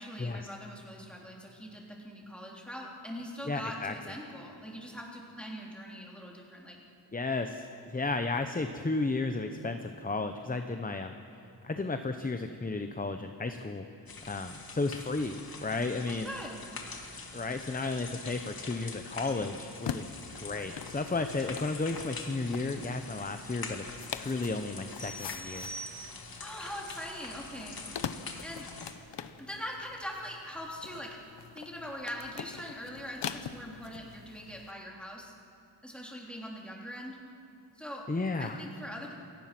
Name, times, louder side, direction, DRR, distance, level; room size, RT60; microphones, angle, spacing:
voice 1, 0.0-6.8 16.1-16.6 26.4-27.8 28.4-28.7 29.4-31.2 31.5-35.3 35.8-37.2 37.7-38.1 38.4-39.1, equal, ahead, -2 dB, 3.5 m, -42 dB
voice 2, 3.5-3.9 7.1-11.1 11.6-13.8 14.3-15.3 15.6-16.3 17.3-20.1 20.4-25.7 38.1-38.6, left 3 dB, 20° left, 7 dB, 0.9 m, -33 dB
sound 1, 14.1-28.9, left 3 dB, 55° left, 2.4 m, -45 dB
sound 2, 19.7-34.7, left 8 dB, 75° left, 0.9 m, -44 dB
sound 3, 25.0-26.5, right 2 dB, 25° right, 6.5 m, -44 dB
27.0 x 18.0 x 6.1 m, 2.8 s
wide cardioid pair, 105°, 43 cm